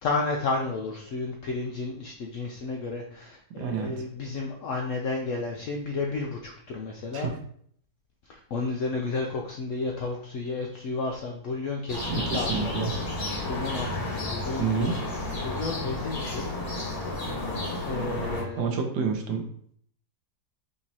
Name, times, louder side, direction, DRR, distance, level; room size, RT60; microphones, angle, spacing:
voice 1, 0.0-7.3 8.3-14.7 15.4-16.5 17.9-18.8, left 3 dB, 75° left, 1 dB, 0.7 m, -32 dB
voice 2, 3.6-3.9 7.1-7.4 12.1-12.9 14.6-15.0 18.6-19.4, right 5 dB, 75° right, 3 dB, 1.3 m, -28 dB
sound 1, 11.9-18.4, left 2 dB, 40° left, 1.2 m, -32 dB
5.2 x 2.9 x 2.7 m, 0.62 s
omnidirectional pair, 1.8 m